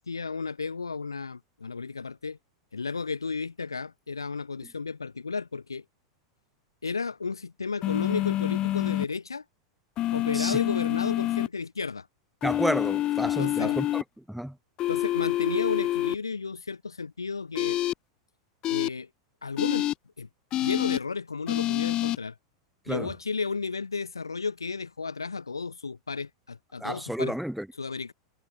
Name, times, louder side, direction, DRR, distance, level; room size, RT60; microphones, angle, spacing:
voice 1, 0.0-2.4 2.7-5.8 6.8-9.4 10.1-12.1 13.4-13.8 14.9-17.8 18.7-19.1 19.4-19.9 20.2-20.3 20.6-22.4 22.9-27.3 27.8-28.1, left 4 dB, 80° left, 0.9 m, -33 dB
sound 1, 7.8-9.0 10.0-11.5 12.4-14.0 14.8-16.1 17.5-17.9 18.6-18.9 19.6-19.9 20.5-21.0 21.5-22.2, left 14 dB, 35° left, 0.6 m, -27 dB
voice 2, 12.4-14.6 22.9-23.1 26.8-27.7, equal, ahead, 0.4 m, -31 dB
figure-of-eight pair, 90°, 2 cm